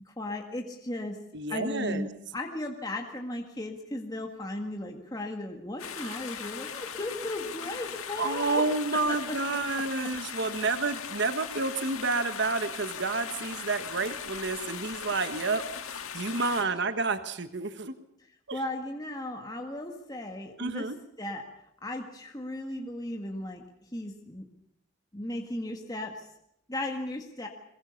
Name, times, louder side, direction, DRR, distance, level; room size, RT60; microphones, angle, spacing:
voice 1, 0.1-1.2 1.5-2.1 2.3-8.6 9.3-9.4 18.2-20.9 21.2-23.6 23.9-24.5 25.1-26.3 26.7-27.5, left 1 dB, 20° left, 2 dB, 1.8 m, -36 dB
voice 2, 1.3-2.1 6.0-6.2 8.2-15.6 15.9-18.0 18.5-18.6 20.6-21.0 22.7-22.9, right 3 dB, 55° right, 10 dB, 1.3 m, -30 dB
sound 1, 5.8-16.6, left 7 dB, 90° left, 1.7 m, -39 dB
22.5 x 20.5 x 7.1 m, 0.78 s
head